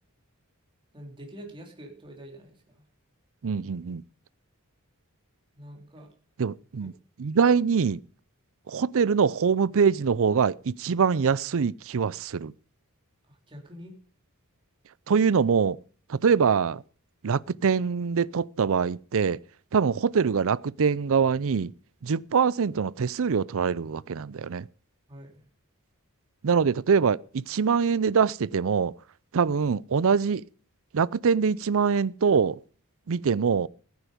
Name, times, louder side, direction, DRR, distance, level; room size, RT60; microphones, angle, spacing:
voice 1, 0.9-2.8 5.5-6.1 6.8-6.9 13.3-13.9 25.1-25.4, equal, 25° right, 3.4 m, -46 dB
voice 2, 3.4-4.0 6.4-6.9 7.2-8.0 8.7-12.5 15.1-15.8 16.1-16.8 17.2-19.4 19.7-21.7 22.0-24.7 26.4-28.9 29.3-30.4 30.9-32.6 33.1-33.7, right 6 dB, 65° right, 0.5 m, -24 dB
15.5 x 9.5 x 5.1 m
head